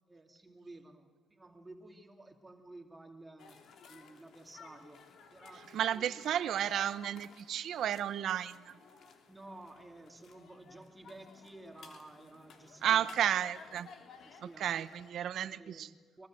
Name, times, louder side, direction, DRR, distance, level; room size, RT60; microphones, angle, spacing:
voice 1, 0.1-5.0 5.3-6.1 9.3-13.1 14.2-16.3, right 2 dB, 15° right, 4 dB, 2.5 m, -53 dB
sound 1, 3.4-15.1, left 5 dB, 70° left, 3.0 m, -56 dB
voice 2, 5.7-8.7 12.8-13.9 14.6-15.9, right 10 dB, 70° right, 14 dB, 0.9 m, -32 dB
23.5 x 23.0 x 7.5 m, 1.5 s
cardioid pair, 90°, 0 cm